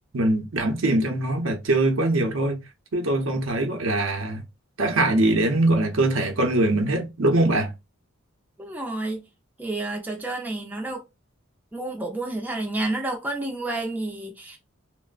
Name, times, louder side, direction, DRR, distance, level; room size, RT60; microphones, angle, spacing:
voice 1, 0.1-2.6 2.9-4.4 4.8-7.7, right 2 dB, 75° right, 0.7 m, -22 dB
voice 2, 8.6-9.2 9.6-11.0 11.7-14.6, right 2 dB, 10° right, 0.5 m, -30 dB
3.0 x 2.0 x 2.4 m
head